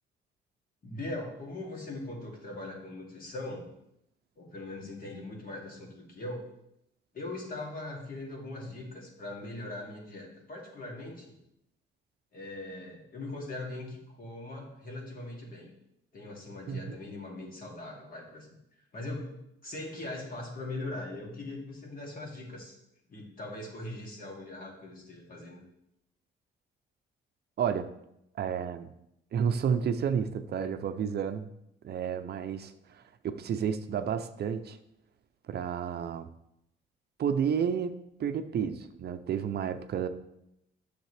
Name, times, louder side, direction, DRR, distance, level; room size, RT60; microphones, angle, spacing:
voice 1, 0.8-3.6 4.4-6.5 7.1-11.4 12.3-15.7 16.1-18.5 18.9-22.8 23.1-25.6, left 2 dB, 45° left, -1 dB, 2.5 m, -40 dB
voice 2, 27.6-27.9 28.4-28.9 29.3-31.5 31.8-34.8 35.5-36.3 37.2-40.1, right 7 dB, 55° right, 9 dB, 0.6 m, -31 dB
9.2 x 6.6 x 3.3 m, 0.81 s
cardioid pair, 90°, 20 cm